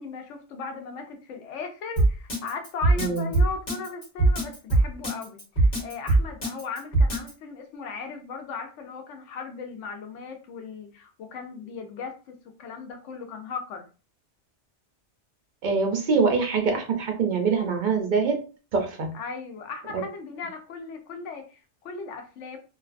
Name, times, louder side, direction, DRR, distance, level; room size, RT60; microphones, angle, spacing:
voice 1, 0.0-13.9 19.1-22.6, left 5 dB, 90° left, 5 dB, 0.9 m, -37 dB
Drum kit, 2.0-7.3, right 2 dB, 50° left, 1.4 m, -21 dB
voice 2, 3.0-3.3 15.6-18.4 18.7-19.1, right 4 dB, 60° right, 3 dB, 0.5 m, -24 dB
2.5 x 2.3 x 2.4 m, 0.34 s
omnidirectional pair, 1.2 m